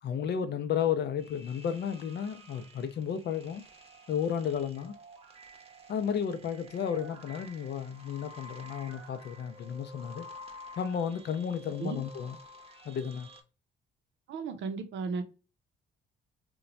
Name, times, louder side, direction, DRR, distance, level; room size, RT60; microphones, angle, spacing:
voice 1, 0.0-3.6 4.1-4.9 5.9-10.3 10.8-12.4 12.8-13.3, left 8 dB, 60° left, 0.5 m, -33 dB
sound 1, 1.2-13.4, equal, 30° right, 0.8 m, -50 dB
voice 2, 14.3-15.2, right 4 dB, 70° right, 0.6 m, -34 dB
3.0 x 2.2 x 2.5 m
cardioid pair, 90°, 20 cm